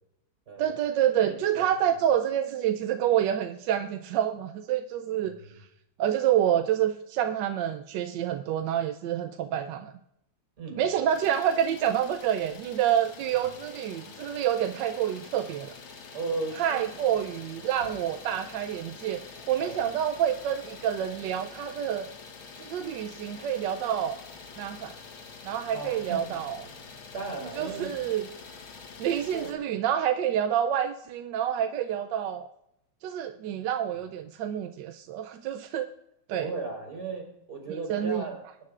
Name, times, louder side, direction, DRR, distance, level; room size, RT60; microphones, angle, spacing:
voice 1, 0.6-5.3 6.0-9.9 10.8-15.7 16.6-22.1 22.6-24.2 24.6-24.9 25.4-26.6 27.6-28.3 29.0-32.5 33.0-35.9 36.3-36.5 37.9-38.2, right 10 dB, 75° right, 7 dB, 1.1 m, -28 dB
voice 2, 1.2-1.6 5.2-5.5 10.6-10.8 13.3-13.4 16.1-16.9 18.0-18.1 19.6-20.0 25.7-26.4 27.1-27.9 29.3-29.5 36.4-38.4, right 3 dB, 50° right, -2 dB, 4.7 m, -36 dB
Idling, 11.1-29.5, left 5 dB, 85° left, 2.1 m, -46 dB
22.5 x 9.8 x 2.4 m, 0.81 s
omnidirectional pair, 2.2 m